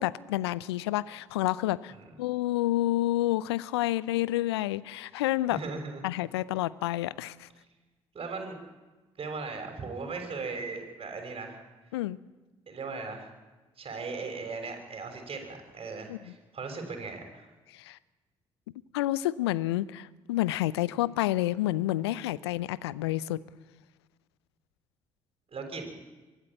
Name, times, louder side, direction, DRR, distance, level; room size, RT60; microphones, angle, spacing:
voice 1, 0.0-1.9 2.2-5.6 6.0-7.5 11.9-12.2 16.1-16.3 17.7-18.0 18.9-23.4, left 15 dB, 80° left, 20 dB, 0.5 m, -29 dB
voice 2, 5.5-6.0 8.1-8.6 9.2-11.6 12.7-13.3 13.8-17.5 25.5-25.9, right 4 dB, 45° right, 4 dB, 6.3 m, -38 dB
23.5 x 12.5 x 9.1 m, 1.2 s
figure-of-eight pair, 40°, 13 cm